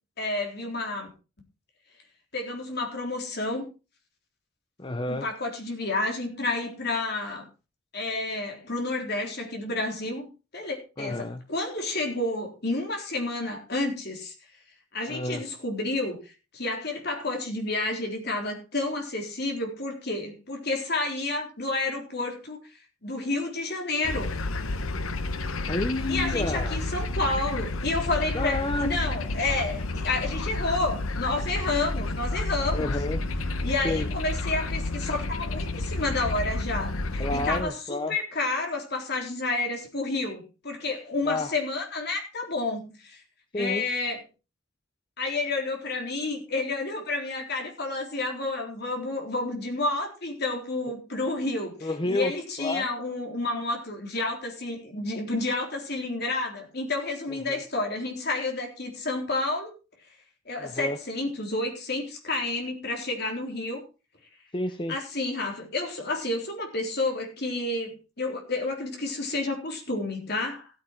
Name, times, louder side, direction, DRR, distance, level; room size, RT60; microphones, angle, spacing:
voice 1, 0.2-1.1 2.3-3.7 5.1-7.5 7.9-10.3 10.5-14.3 14.9-22.6 23.0-24.3 26.1-32.9 33.6-43.2 43.5-44.2 45.2-59.7 60.5-63.8 64.9-70.7, left 2 dB, 50° left, 2 dB, 3.8 m, -30 dB
voice 2, 4.8-5.3 11.0-11.5 15.1-15.4 25.6-26.8 28.3-28.9 32.7-33.2 33.8-34.1 37.2-38.1 41.3-41.5 43.5-43.9 51.8-52.3 52.6-52.9 57.3-57.6 60.6-61.0 64.5-65.0, left 2 dB, 25° left, 10 dB, 0.7 m, -30 dB
sound 1, 24.0-37.6, left 2 dB, 85° left, 1.0 m, -30 dB
15.5 x 8.8 x 4.5 m, 0.32 s
head